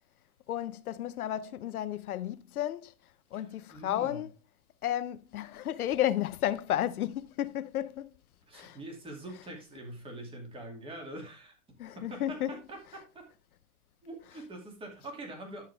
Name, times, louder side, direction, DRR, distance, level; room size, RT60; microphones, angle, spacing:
voice 1, 0.5-2.9 3.3-4.3 4.8-8.1 8.5-8.8 11.8-12.6, left 12 dB, 85° left, 0.9 m, -32 dB
voice 2, 3.3-4.3 8.5-11.5 12.0-13.3 14.0-15.6, right 1 dB, 10° right, 2.4 m, -44 dB
11.0 x 6.6 x 3.4 m
hypercardioid pair, 145°, 43 cm